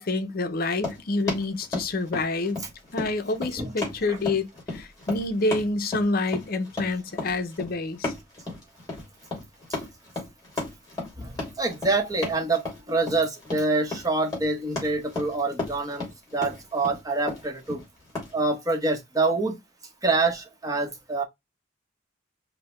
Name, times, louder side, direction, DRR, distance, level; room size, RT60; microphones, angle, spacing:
voice 1, 0.0-2.6 2.9-4.5 4.7-8.1, left 2 dB, 50° left, 0.6 m, -27 dB
Run, 0.7-18.3, left 3 dB, 20° left, 2.5 m, -35 dB
voice 2, 11.2-17.8 18.3-19.6 20.0-21.2, right 3 dB, 20° right, 0.9 m, -26 dB
5.2 x 2.1 x 3.0 m
head